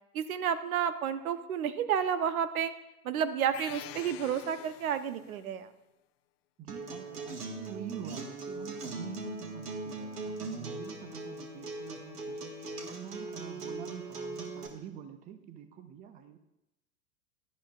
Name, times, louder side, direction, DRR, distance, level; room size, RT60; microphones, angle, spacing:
voice 1, 0.1-2.7 3.0-5.7, right 8 dB, 65° right, 12 dB, 0.9 m, -31 dB
sound 1, 3.5-5.4, left 14 dB, 45° left, 0.5 m, -46 dB
voice 2, 6.6-16.4, right 9 dB, 15° right, 10 dB, 0.5 m, -46 dB
Acoustic guitar, 6.7-14.7, right 3 dB, 80° right, 1.7 m, -40 dB
17.0 x 11.5 x 2.4 m, 0.92 s
figure-of-eight pair, 95°, 46 cm